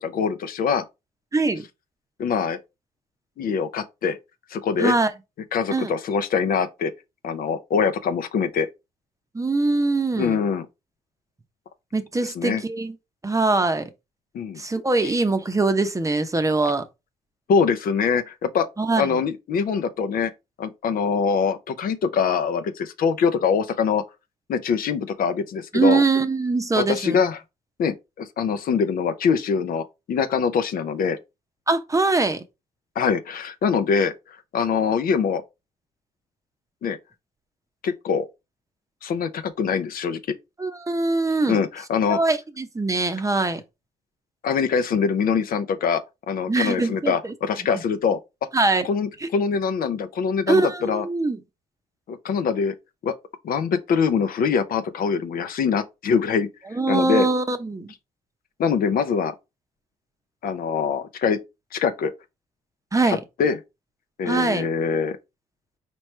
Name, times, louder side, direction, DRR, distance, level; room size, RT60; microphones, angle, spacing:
voice 1, 0.0-0.8 2.2-2.6 3.4-4.2 4.5-4.9 5.5-6.9 7.2-8.7 10.1-10.7 12.2-12.6 14.3-14.6 15.0-15.1 17.5-18.7 19.0-20.3 20.6-24.0 24.5-26.0 26.7-27.4 27.8-31.2 33.0-35.4 36.8-37.0 37.8-38.3 39.0-40.2 41.5-42.2 44.4-48.2 48.8-51.0 52.1-52.7 53.0-53.1 53.4-56.5 56.9-57.3 58.6-59.3 60.4-61.4 61.7-62.1 63.1-63.6 64.2-65.2, left 6 dB, 60° left, 0.7 m, -23 dB
voice 2, 1.3-1.6 4.8-5.1 5.7-5.9 9.3-10.4 11.9-12.9 13.2-13.9 14.6-16.8 18.8-19.1 25.7-27.2 31.7-32.4 40.6-41.6 42.1-43.6 46.5-47.3 48.5-48.9 49.2-49.3 50.5-51.4 56.7-57.9 62.9-63.2 64.3-64.7, right 3 dB, 20° right, 0.7 m, -22 dB
4.5 x 3.0 x 3.2 m
supercardioid pair, 60°, 17 cm